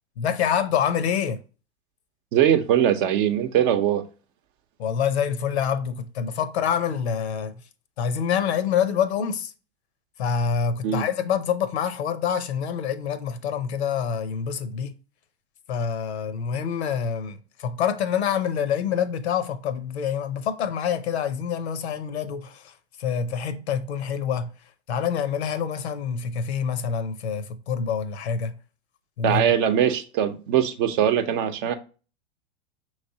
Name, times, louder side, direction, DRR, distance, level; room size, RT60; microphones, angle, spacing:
voice 1, 0.2-1.4 4.8-7.6 8.0-9.5 10.2-14.9 15.7-22.7 23.0-24.5 24.9-28.5 29.2-29.4, left 7 dB, 75° left, 0.7 m, -26 dB
voice 2, 2.3-4.0 10.8-11.0 29.2-31.7, right 9 dB, 50° right, 0.7 m, -21 dB
5.9 x 3.2 x 2.7 m
hypercardioid pair, 100°, 33 cm